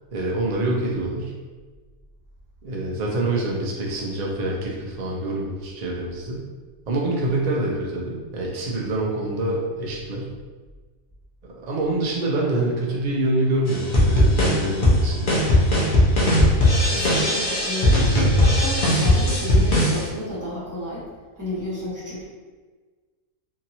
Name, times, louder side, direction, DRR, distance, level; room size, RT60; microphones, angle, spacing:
voice 1, 0.1-1.3 2.6-6.4 6.9-10.3 11.6-15.3, right 2 dB, 75° right, -3 dB, 0.3 m, -26 dB
sound 1, 13.7-20.0, left 1 dB, 45° left, 0.7 m, -18 dB
voice 2, 16.9-18.1 18.3-21.0 21.3-22.2, left 1 dB, 15° right, -8 dB, 0.8 m, -31 dB
2.9 x 2.7 x 2.7 m, 1.4 s
omnidirectional pair, 1.5 m